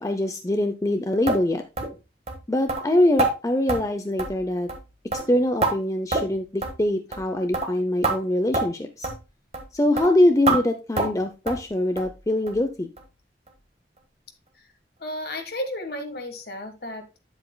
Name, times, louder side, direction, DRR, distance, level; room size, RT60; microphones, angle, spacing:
voice 1, 0.0-1.6 2.5-4.7 5.3-9.1 9.7-12.9, left 1 dB, 20° left, 7 dB, 0.5 m, -23 dB
sound 1, 1.3-1.4 1.8-1.9 2.3-2.4 2.7-2.8 3.2-3.3 3.7-3.8 4.2-4.4 4.7-4.8 5.1-5.7 6.1-6.3 6.6-6.8 7.1-7.3 7.5-7.7 8.0-8.2 8.5-8.7 9.0-9.2 9.5-9.7 10.0-10.1 10.5-10.6 11.0-11.2 11.5-11.6 12.0-12.1 12.5-12.6 13.0-13.1 13.5-13.6, right 3 dB, 35° right, 1.5 m, -25 dB
voice 2, 15.0-17.2, left 1 dB, 60° left, 6 dB, 1.5 m, -33 dB
9.2 x 7.8 x 2.2 m, 0.27 s
head